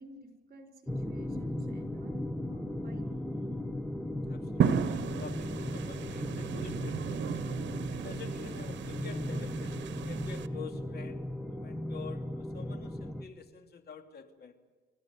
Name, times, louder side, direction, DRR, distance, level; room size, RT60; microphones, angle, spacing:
voice 1, 0.0-3.1, right 1 dB, 50° right, 6 dB, 6.2 m, -54 dB
sound 1, 0.9-13.3, left 1 dB, 5° left, 1.4 m, -37 dB
voice 2, 4.3-7.2 7.9-9.8 10.1-11.2 11.5-14.6, left 5 dB, 55° left, 6 dB, 2.7 m, -47 dB
sound 2, 4.6-10.5, right 8 dB, 65° right, 1.3 m, -34 dB
28.5 x 14.5 x 9.7 m, 1.3 s
cardioid pair, 90°, 20 cm